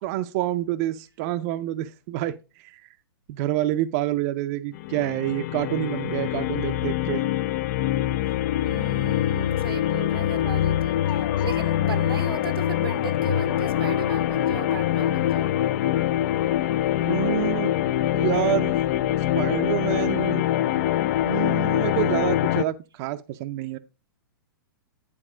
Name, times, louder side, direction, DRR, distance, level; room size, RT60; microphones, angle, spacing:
voice 1, 0.0-2.9 3.3-7.2 17.0-17.8 18.1-18.8 19.4-20.5 21.2-23.8, right 14 dB, 40° right, 0.5 m, -27 dB
sound 1, 4.7-22.6, left 12 dB, 45° left, 0.4 m, -24 dB
voice 2, 8.6-11.1 11.4-15.6, right 5 dB, 85° right, 0.9 m, -35 dB
sound 2, 11.0-21.5, left 7 dB, 65° left, 0.8 m, -40 dB
10.0 x 4.1 x 4.9 m
hypercardioid pair, 125°, 12 cm